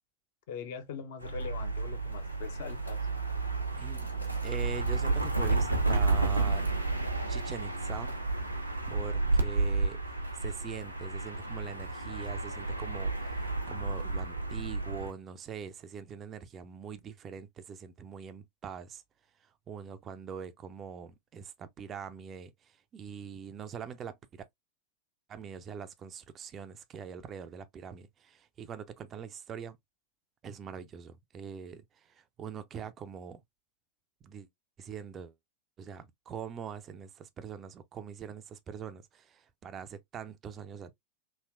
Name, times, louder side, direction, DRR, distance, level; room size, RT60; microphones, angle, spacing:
voice 1, 0.5-3.1, left 7 dB, 50° left, 0.7 m, -42 dB
sound 1, 1.2-15.1, right 3 dB, 90° right, 0.7 m, -31 dB
voice 2, 3.8-4.1 4.4-6.7 7.3-8.2 8.9-10.0 10.3-19.0 19.4-24.4 25.3-29.8 30.4-33.4 34.2-34.5 34.8-35.3 35.8-41.0, right 7 dB, 25° right, 0.4 m, -43 dB
3.2 x 2.8 x 2.3 m
figure-of-eight pair, 90°, 0 cm